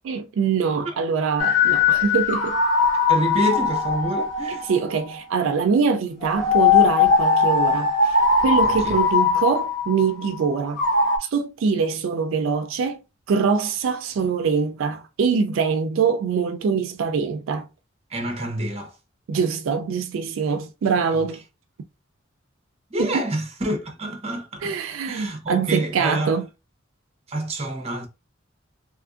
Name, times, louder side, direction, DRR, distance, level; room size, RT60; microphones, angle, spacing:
voice 1, 0.1-2.6 4.7-8.2 8.4-10.8 11.2-13.0 13.3-17.7 19.3-21.4 23.0-23.2 24.6-26.5, right 5 dB, 80° right, 0.3 m, -23 dB
sound 1, 1.4-5.2 6.2-11.2, left 5 dB, 60° left, 1.2 m, -20 dB
voice 2, 3.1-4.7 8.6-9.0 18.1-19.0 21.1-21.2 22.9-24.8 25.0-26.4 27.3-28.1, right 1 dB, 30° right, 0.7 m, -28 dB
2.9 x 2.5 x 2.4 m
head